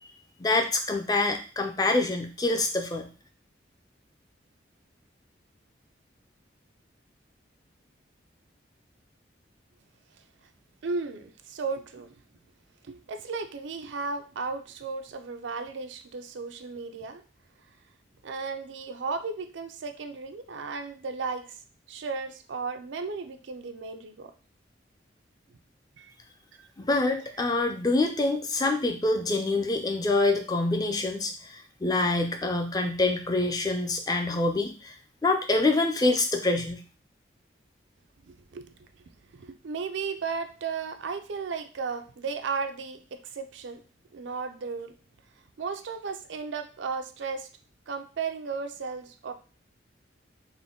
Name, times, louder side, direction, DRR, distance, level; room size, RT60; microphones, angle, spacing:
voice 1, 0.0-3.1 26.8-34.9 35.2-36.8, left 2 dB, 20° left, 4 dB, 0.4 m, -26 dB
voice 2, 10.8-12.2 12.8-17.2 18.2-21.6 21.9-24.3 26.0-26.1 38.3-38.7 39.3-43.8 44.1-45.0 45.6-47.5 47.9-49.3, right 4 dB, 80° right, 8 dB, 0.4 m, -35 dB
3.8 x 2.1 x 3.6 m, 0.37 s
head